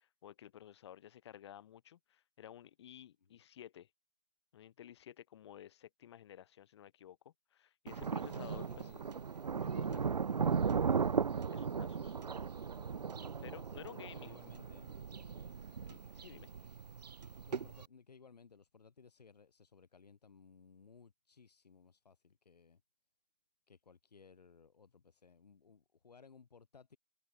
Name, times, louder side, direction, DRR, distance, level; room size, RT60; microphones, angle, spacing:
voice 1, 0.0-3.9 4.5-8.9 9.7-10.0 11.5-12.1 13.4-14.4 15.9-16.5, left 11 dB, 40° left, 2.8 m, -54 dB
Thunder, 7.9-17.9, right 6 dB, 85° right, 1.2 m, -37 dB
voice 2, 8.3-9.2 9.6-11.1 14.0-15.0 17.4-22.8 23.7-27.0, left 5 dB, 75° left, 7.1 m, -61 dB
hypercardioid pair, 160°, 20 cm